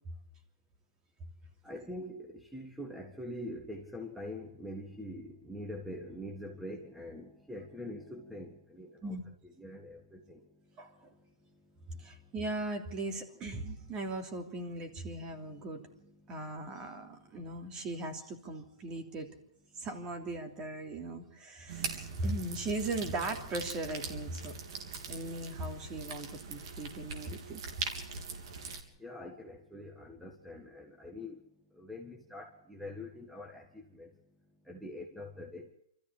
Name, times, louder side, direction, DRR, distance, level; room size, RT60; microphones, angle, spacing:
voice 1, 1.6-9.2 9.4-12.3 15.2-17.3 17.7-17.8 19.7-19.9 21.7-21.8 29.0-34.2 34.6-35.7, left 1 dB, ahead, 2 dB, 1.8 m, -45 dB
voice 2, 10.8-11.1 11.9-15.8 16.3-19.3 19.8-24.6 25.1-27.6, right 2 dB, 25° right, 4 dB, 3.2 m, -38 dB
sound 1, 21.7-28.8, right 4 dB, 55° right, 3.6 m, -42 dB
24.5 x 14.5 x 8.7 m, 0.76 s
hypercardioid pair, 135°, 3 cm